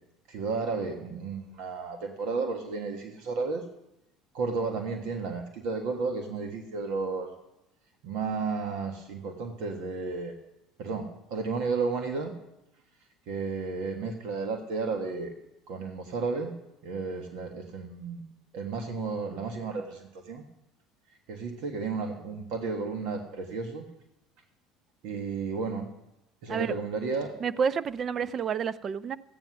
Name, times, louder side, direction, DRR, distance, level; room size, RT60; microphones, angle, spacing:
voice 1, 0.3-3.6 4.3-7.3 8.0-10.3 10.8-12.3 13.3-15.3 15.7-16.5 16.8-18.2 18.5-20.4 21.3-23.9 25.0-25.9 26.4-27.4, right 4 dB, 70° right, 4 dB, 1.4 m, -33 dB
voice 2, 27.4-29.2, right 6 dB, 40° right, 16 dB, 0.5 m, -29 dB
14.0 x 9.1 x 6.1 m, 0.89 s
supercardioid pair, 85°, 0 cm